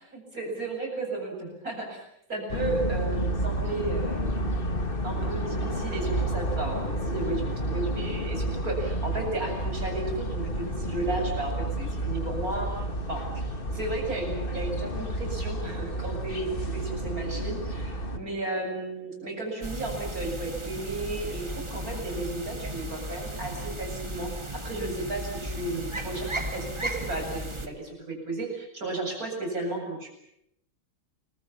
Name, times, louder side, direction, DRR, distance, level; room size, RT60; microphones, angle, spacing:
voice 1, 0.1-2.0 2.3-4.3 5.0-30.1, right 2 dB, 45° right, 2 dB, 8.4 m, -34 dB
sound 1, 2.5-18.2, right 1 dB, 30° left, 2.0 m, -30 dB
sound 2, 19.6-27.7, right 1 dB, 15° right, 2.0 m, -35 dB
29.5 x 23.0 x 7.3 m, 0.75 s
omnidirectional pair, 2.2 m